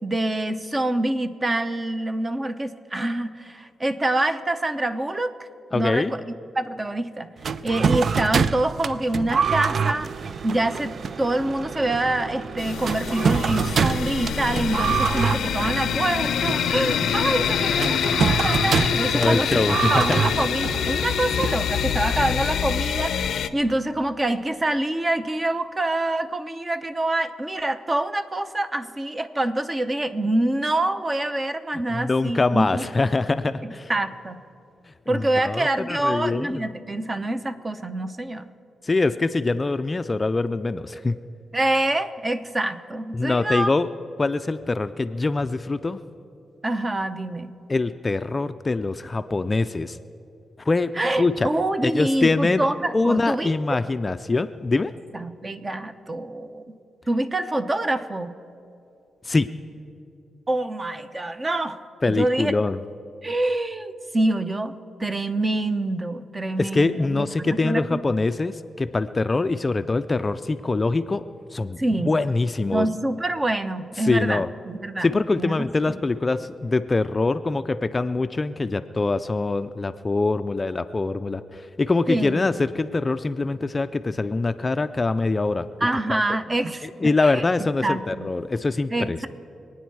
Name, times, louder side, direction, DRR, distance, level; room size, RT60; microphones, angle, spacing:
voice 1, 0.0-5.3 5.7-7.3 7.6-10.1 10.4-19.5 19.9-32.9 33.6-34.4 35.1-38.5 41.5-43.7 46.6-47.5 50.9-53.5 55.1-56.8 57.1-58.3 60.5-61.8 62.1-62.5 63.2-64.7 65.0-68.0 71.8-72.2 72.7-76.0 82.1-82.4 85.8-87.4 87.8-88.3 88.9-89.3, right 1 dB, 25° right, 10 dB, 0.7 m, -26 dB
voice 2, 5.7-6.1 19.1-20.2 31.9-33.9 35.1-36.6 38.8-41.2 43.1-43.9 44.2-46.0 47.7-50.0 50.6-50.9 51.2-51.5 51.8-52.7 52.9-54.9 59.2-59.5 62.0-62.8 66.6-71.2 71.5-71.8 72.0-72.9 74.0-74.5 75.0-85.7 86.1-86.2 87.0-89.3, left 3 dB, 25° left, 11 dB, 0.4 m, -24 dB
sound 1, 7.4-22.1, right 6 dB, 55° right, 0.4 m, -26 dB
sound 2, 12.6-23.5, left 8 dB, 85° left, 0.5 m, -25 dB
25.5 x 9.3 x 4.7 m, 2.6 s
cardioid pair, 105°, 0 cm